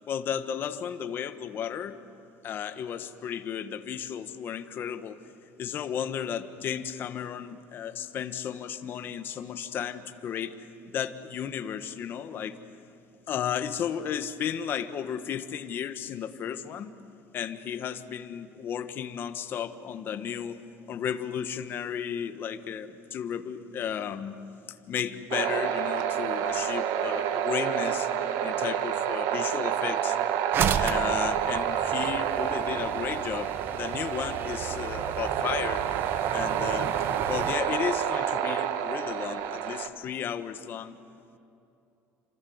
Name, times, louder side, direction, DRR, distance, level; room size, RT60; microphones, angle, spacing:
voice 1, 0.1-2.0 2.4-5.2 5.6-12.6 13.3-16.9 17.3-20.6 20.9-24.4 24.7-28.1 28.4-30.2 30.8-35.8 36.3-36.9 37.3-40.9, left 8 dB, 40° left, 9 dB, 1.2 m, -34 dB
sound 1, 25.3-39.9, right 9 dB, 80° right, 1.5 m, -29 dB
sound 2, 30.5-37.5, right 7 dB, 40° right, 1.1 m, -34 dB
28.5 x 26.0 x 7.9 m, 2.7 s
cardioid pair, 165°, 6 cm